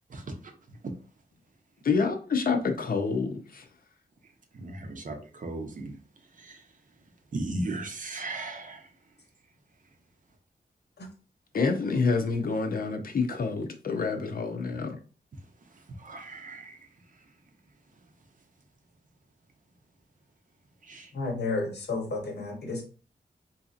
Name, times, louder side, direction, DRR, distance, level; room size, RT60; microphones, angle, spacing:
voice 1, 0.1-0.9 4.5-5.9 6.3-6.6 7.3-8.9 15.7-16.9 20.8-21.1, right 2 dB, 50° right, 4 dB, 0.7 m, -37 dB
voice 2, 1.8-3.7 11.5-15.0, left 4 dB, 60° left, 5 dB, 0.6 m, -27 dB
voice 3, 21.1-22.8, left 3 dB, 75° left, 2 dB, 1.0 m, -32 dB
3.9 x 2.7 x 2.4 m, 0.37 s
wide cardioid pair, 105°, 17 cm